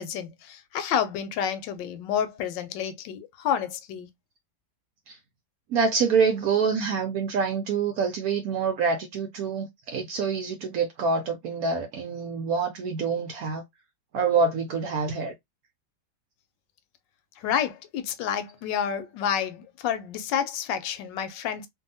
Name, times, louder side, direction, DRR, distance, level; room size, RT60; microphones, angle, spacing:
voice 1, 0.0-4.1 17.4-21.7, left 8 dB, 80° left, 1.2 m, -29 dB
voice 2, 5.7-13.6 14.1-15.3, right 5 dB, 70° right, 0.9 m, -26 dB
2.7 x 2.7 x 2.6 m
omnidirectional pair, 2.0 m